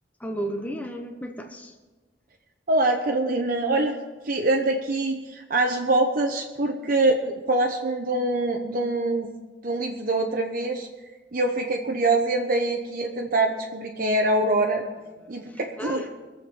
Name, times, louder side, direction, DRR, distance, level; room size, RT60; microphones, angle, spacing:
voice 1, 0.2-1.8 15.4-16.1, equal, 10° left, 4 dB, 0.9 m, -33 dB
voice 2, 2.7-4.0 4.2-9.3 9.6-10.9 11.3-14.8 15.3-16.1, right 2 dB, 50° right, 1 dB, 1.0 m, -24 dB
22.0 x 7.7 x 5.3 m, 1.2 s
head